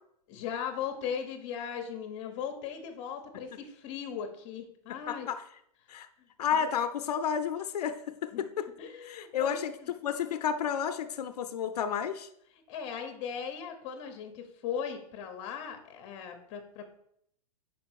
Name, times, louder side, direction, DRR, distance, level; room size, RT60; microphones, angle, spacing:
voice 1, 0.3-5.3 6.5-6.7 8.3-8.4 8.8-9.9 12.7-17.0, left 7 dB, 25° left, 5 dB, 0.9 m, -38 dB
voice 2, 5.1-5.4 5.9-6.1 6.4-8.7 9.1-9.7 10.0-12.3, left 8 dB, 80° left, 10 dB, 0.6 m, -31 dB
5.3 x 4.6 x 6.3 m, 0.72 s
supercardioid pair, 170°, 20 cm